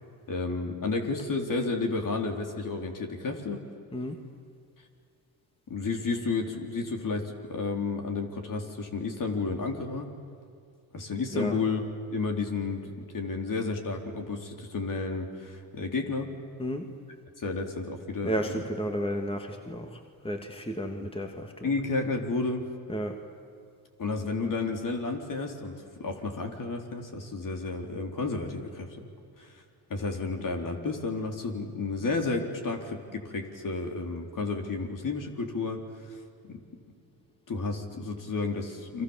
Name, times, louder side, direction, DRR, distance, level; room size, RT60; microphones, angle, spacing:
voice 1, 0.3-3.7 5.7-10.1 10.9-11.8 12.1-16.4 17.4-18.7 20.9-21.1 21.6-22.8 24.0-29.1 29.4-29.6 29.9-36.2 36.4-36.6 37.5-39.0, left 3 dB, 45° left, 3 dB, 4.2 m, -32 dB
voice 2, 11.3-11.7 16.6-16.9 18.2-21.8 22.9-23.2, equal, 10° left, 4 dB, 2.5 m, -33 dB
30.0 x 24.0 x 7.4 m, 2.3 s
supercardioid pair, 65°, 43 cm